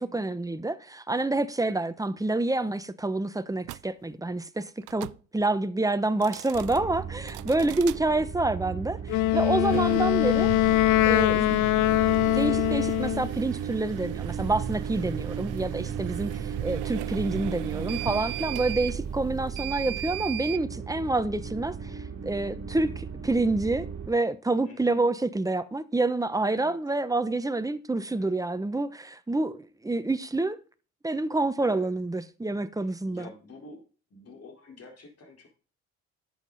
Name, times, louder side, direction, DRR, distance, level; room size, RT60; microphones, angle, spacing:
voice 1, 0.0-5.1 5.3-10.5 11.0-11.6 12.3-16.3 16.6-30.6 31.0-33.3, right 2 dB, 10° right, 0.9 m, -28 dB
sound 1, 3.6-3.8 4.8-5.2 6.1-6.8 7.3-8.0 9.6-20.6, right 19 dB, 85° right, 0.5 m, -36 dB
voice 2, 6.1-6.4 7.8-8.2 16.3-16.7 18.3-18.7 24.6-25.1 26.5-26.8 28.0-28.3 31.6-31.9 32.8-33.8 34.1-35.5, left 1 dB, 55° left, 4.2 m, -49 dB
sound 2, 6.5-24.1, right 6 dB, 45° right, 2.5 m, -36 dB
Wind instrument woodwind instrument, 9.1-13.3, left 17 dB, 90° left, 0.5 m, -23 dB
11.5 x 7.7 x 4.0 m
cardioid pair, 90°, 30 cm